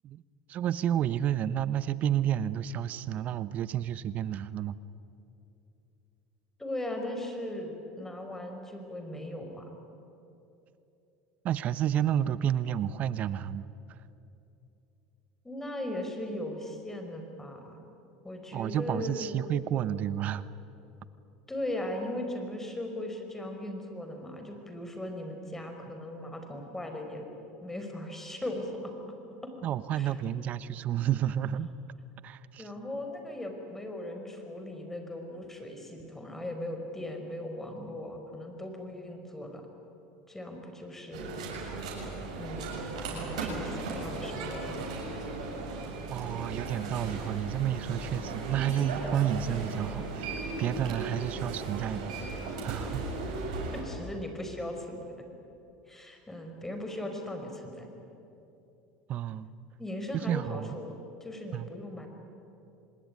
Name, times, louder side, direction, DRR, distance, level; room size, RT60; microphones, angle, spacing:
voice 1, 0.5-4.8 11.4-13.7 18.5-20.4 29.6-31.7 32.2-32.7 46.1-52.1 52.6-53.1 59.1-59.5 60.3-60.8 61.5-61.7, right 10 dB, 45° right, 16 dB, 1.0 m, -30 dB
voice 2, 6.6-9.7 15.4-17.8 18.2-19.5 21.5-27.3 27.6-28.9 29.4-29.5 29.9-30.2 32.6-39.7 40.3-41.4 42.4-44.8 53.7-55.0 55.9-57.9 59.8-62.1, left 1 dB, 10° left, 4 dB, 5.1 m, -38 dB
sound 1, 41.1-53.8, right 3 dB, 85° right, 7.3 m, -36 dB
25.5 x 20.0 x 9.7 m, 2.8 s
supercardioid pair, 100°, 3 cm